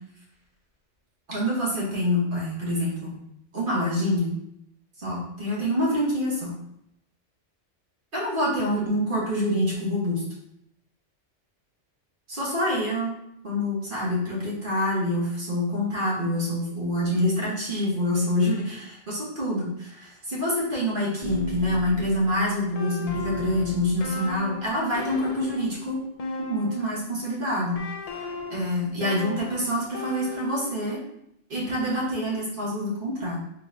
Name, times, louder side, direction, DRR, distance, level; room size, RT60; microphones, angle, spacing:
voice 1, 1.3-3.2 3.5-4.3 5.0-6.5 8.1-10.2 12.3-13.1 13.4-26.0 26.4-27.8 28.5-31.0 31.5-33.4, left 1 dB, 45° right, -5 dB, 1.4 m, -26 dB
sound 1, 21.2-27.2 27.7-31.0, left 3 dB, 55° left, 0.4 m, -36 dB
4.1 x 4.0 x 2.3 m, 0.78 s
omnidirectional pair, 1.2 m